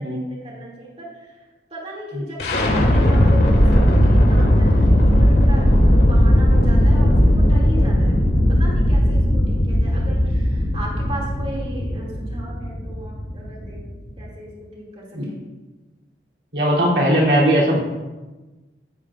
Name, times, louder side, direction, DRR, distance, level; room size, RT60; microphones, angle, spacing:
voice 1, 0.0-13.9 14.2-15.4, right 1 dB, 35° right, -4 dB, 2.6 m, -36 dB
sound 1, 2.4-14.3, equal, 70° left, 2.8 m, -17 dB
voice 2, 16.5-17.8, equal, 70° right, -4 dB, 3.1 m, -19 dB
15.5 x 12.5 x 2.5 m, 1.2 s
head